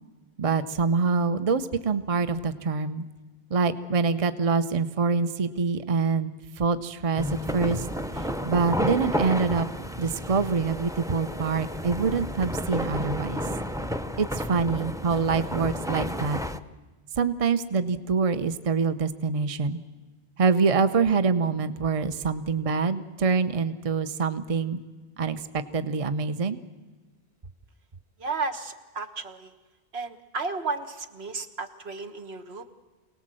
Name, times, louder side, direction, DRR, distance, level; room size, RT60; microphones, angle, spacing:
voice 1, 0.4-3.1 3.5-6.3 6.6-7.9 8.1-9.7 10.0-13.5 14.2-16.4 17.2-19.8 20.4-24.8 25.2-26.6, right 5 dB, 35° right, 11 dB, 0.8 m, -25 dB
sound 1, 7.2-16.6, equal, 5° right, 0.5 m, -31 dB
voice 2, 28.2-29.5 29.9-32.9, right 4 dB, 75° right, 7 dB, 1.6 m, -33 dB
26.0 x 18.5 x 7.7 m, 1.3 s
omnidirectional pair, 1.1 m